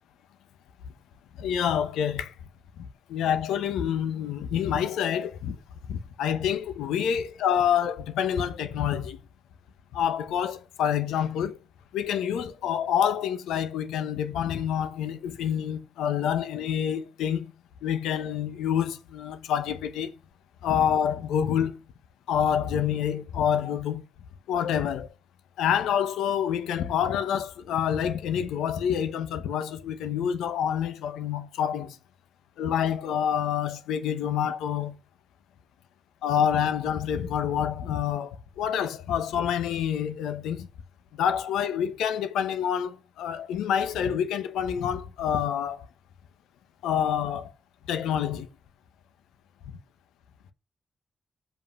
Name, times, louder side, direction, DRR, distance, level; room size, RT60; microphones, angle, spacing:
voice 1, 1.4-2.3 2.8-5.6 5.9-9.2 9.9-11.6 11.9-17.4 17.8-20.1 20.6-21.8 22.3-24.0 24.5-25.1 25.6-32.0 32.6-35.0 36.2-40.7 41.2-45.9 46.8-47.5 47.9-48.5, left 9 dB, 85° left, 0.9 m, -27 dB
7.6 x 5.4 x 5.5 m
supercardioid pair, 40°, 0 cm